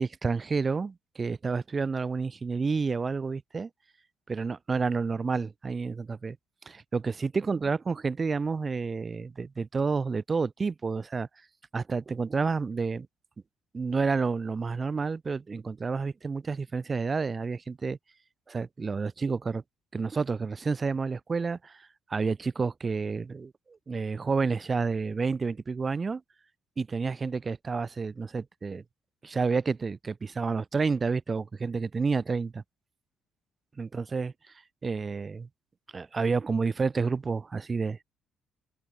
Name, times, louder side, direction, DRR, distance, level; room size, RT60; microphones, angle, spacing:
voice 1, 0.0-3.7 4.3-6.4 6.6-11.3 11.7-13.1 13.7-18.0 18.5-19.6 19.9-26.2 26.8-28.8 29.2-32.6 33.8-34.3 34.8-35.5 35.9-38.0, right 4 dB, 20° right, 1.6 m, -30 dB
cardioid pair, 160°, 0 cm